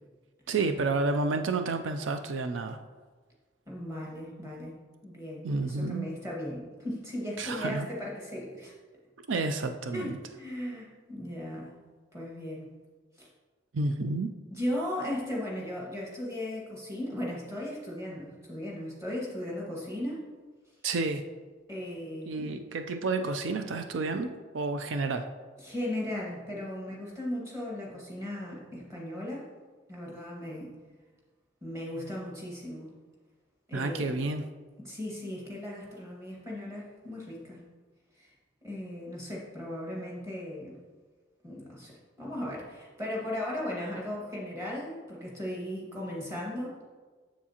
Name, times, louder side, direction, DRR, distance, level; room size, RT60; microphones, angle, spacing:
voice 1, 0.5-2.8 5.4-6.1 7.4-7.9 9.3-10.2 13.7-14.3 20.8-21.2 22.3-24.3 24.5-25.3 33.7-34.4, right 3 dB, 80° right, 7 dB, 0.4 m, -30 dB
voice 2, 3.7-4.7 5.0-8.7 9.9-11.7 12.1-12.7 13.2-13.3 14.5-20.2 21.7-22.6 25.6-29.5 29.9-30.7 31.6-32.9 33.7-34.3 34.8-37.6 38.2-38.3 38.6-40.8 41.4-46.8, left 1 dB, 15° right, -3 dB, 1.6 m, -37 dB
7.2 x 7.2 x 2.9 m, 1.4 s
head